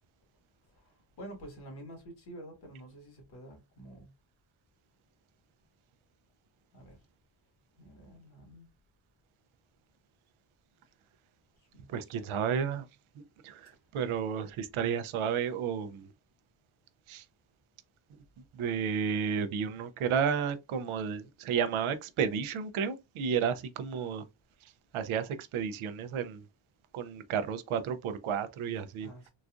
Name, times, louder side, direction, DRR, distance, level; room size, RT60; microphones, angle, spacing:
voice 1, 0.7-4.1 6.7-7.0 7.8-8.7 11.7-12.2 29.0-29.3, right 1 dB, 55° left, 1.6 m, -49 dB
voice 2, 11.9-12.8 13.4-13.6 13.9-16.0 17.1-17.2 18.6-24.2 24.9-26.4 26.9-29.1, right 7 dB, 85° right, 0.6 m, -32 dB
4.0 x 2.4 x 2.4 m
wide cardioid pair, 145°, 48 cm